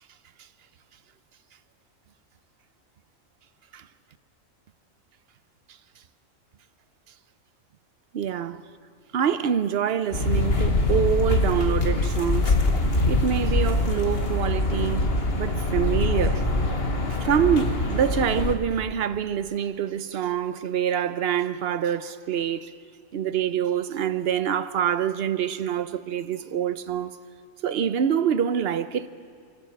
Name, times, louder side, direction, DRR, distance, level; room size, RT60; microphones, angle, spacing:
voice 1, 8.1-8.6 9.1-12.5 13.1-15.1 15.4-16.5 17.2-22.7 23.1-27.1 27.6-29.1, right 8 dB, 55° right, 0.8 m, -26 dB
sound 1, 10.1-18.5, left 2 dB, 50° left, 1.9 m, -23 dB
29.5 x 11.5 x 7.8 m
omnidirectional pair, 1.3 m